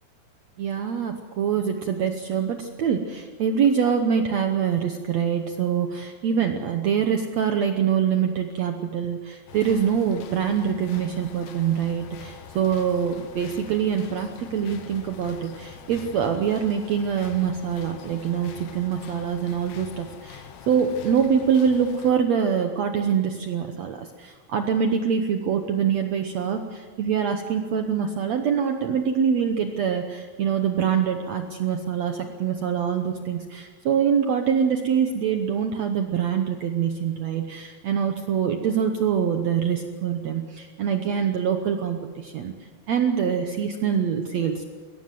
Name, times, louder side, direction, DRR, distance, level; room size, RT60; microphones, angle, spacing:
voice 1, 0.6-42.5 42.9-44.7, right 7 dB, 80° right, 5 dB, 1.5 m, -24 dB
sound 1, 9.5-22.1, left 8 dB, 85° left, 3.4 m, -44 dB
22.0 x 17.5 x 7.7 m, 1.5 s
omnidirectional pair, 4.6 m